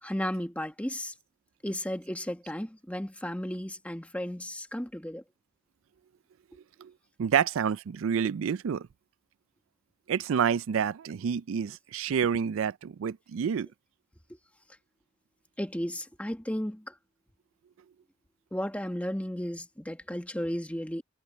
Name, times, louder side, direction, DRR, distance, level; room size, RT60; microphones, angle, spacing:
voice 1, 0.0-1.1 1.6-5.2 15.6-17.0 18.5-21.0, equal, 5° left, 1.5 m, -34 dB
voice 2, 7.2-8.9 10.1-13.7, right 7 dB, 75° right, 0.4 m, -28 dB
head